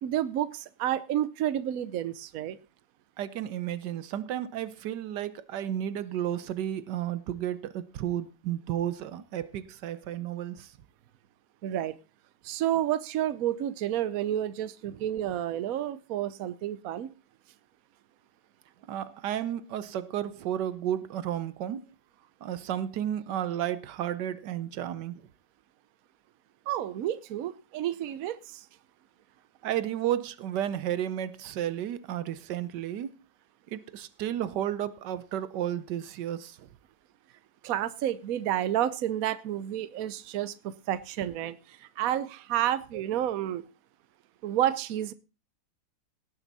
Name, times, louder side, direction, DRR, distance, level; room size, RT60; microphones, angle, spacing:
voice 1, 0.0-2.6 11.6-11.9 12.4-17.1 26.7-28.6 37.6-43.6 44.4-45.1, right 12 dB, 65° right, 1.1 m, -30 dB
voice 2, 3.2-10.7 14.9-15.0 18.9-21.9 22.4-25.2 29.6-33.1 33.7-36.7, right 11 dB, 85° right, 1.4 m, -32 dB
18.0 x 7.1 x 4.1 m
omnidirectional pair, 1.8 m